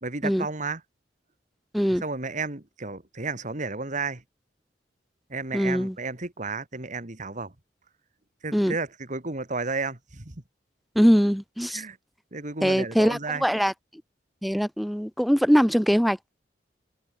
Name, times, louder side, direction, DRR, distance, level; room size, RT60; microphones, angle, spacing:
voice 1, 0.0-0.8 2.0-4.2 5.3-7.5 8.4-10.3 11.7-12.0 12.3-13.4, right 3 dB, 45° right, 2.4 m, -32 dB
voice 2, 5.5-6.0 8.5-8.7 11.0-11.8 12.6-13.7 14.4-16.3, equal, ahead, 2.2 m, -22 dB
head